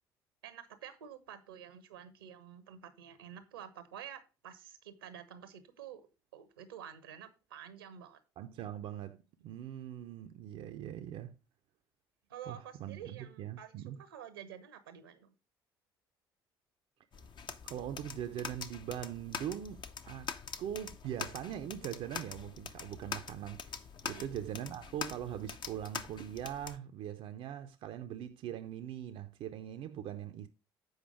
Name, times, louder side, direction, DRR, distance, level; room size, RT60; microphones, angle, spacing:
voice 1, 0.4-6.0 6.3-8.2 12.3-15.3 24.1-24.3, right 9 dB, 80° right, 0.9 m, -49 dB
voice 2, 8.4-9.2 9.4-11.4 12.5-14.0 17.7-20.3 20.6-30.5, right 10 dB, 55° right, 0.6 m, -41 dB
sound 1, 17.1-26.8, left 6 dB, 40° left, 0.8 m, -44 dB
8.0 x 5.0 x 4.9 m
figure-of-eight pair, 50°, 12 cm